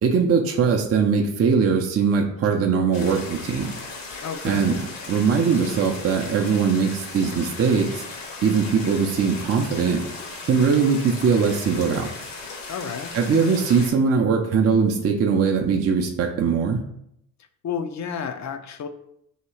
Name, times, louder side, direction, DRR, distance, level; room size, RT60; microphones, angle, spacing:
voice 1, 0.0-3.7 4.4-4.8 5.1-8.0 8.4-10.0 10.4-12.1 13.1-16.8, right 5 dB, 35° right, 2 dB, 0.5 m, -21 dB
sound 1, 2.9-13.9, left 3 dB, 75° left, 1.2 m, -37 dB
voice 2, 4.2-4.7 12.7-13.1 17.6-18.9, left 7 dB, 40° left, 8 dB, 0.5 m, -31 dB
3.0 x 2.8 x 4.4 m, 0.76 s
hypercardioid pair, 55°, 44 cm